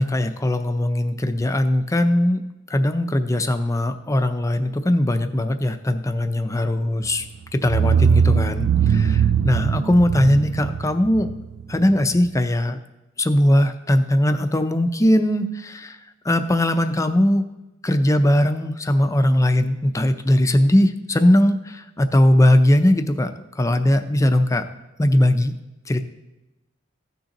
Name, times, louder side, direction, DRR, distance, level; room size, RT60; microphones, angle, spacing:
voice 1, 0.0-2.4 2.7-7.2 7.6-11.3 11.7-12.8 13.2-15.9 16.3-17.4 17.8-23.3 23.6-24.6 25.0-25.5 25.9-26.0, left 1 dB, 15° left, 8 dB, 0.5 m, -19 dB
sound 1, 7.0-7.2 7.6-12.3, right 7 dB, 80° right, 0.3 m, -20 dB
15.5 x 6.4 x 3.0 m, 1.0 s
head